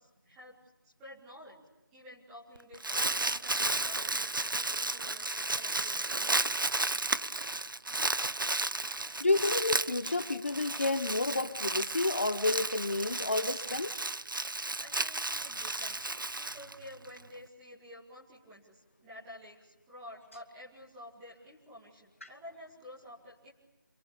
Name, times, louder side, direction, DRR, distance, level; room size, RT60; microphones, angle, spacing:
voice 1, 0.0-1.6 1.9-7.1 14.8-16.1 16.4-23.5, left 1 dB, 5° right, -6 dB, 2.2 m, -51 dB
Crumpling crinkling, 2.6-17.2, right 2 dB, 75° right, 1.0 m, -33 dB
voice 2, 9.2-13.9 22.2-22.3, left 2 dB, 40° left, 9 dB, 1.3 m, -30 dB
27.5 x 22.5 x 8.5 m, 1.0 s
figure-of-eight pair, 175°, 11 cm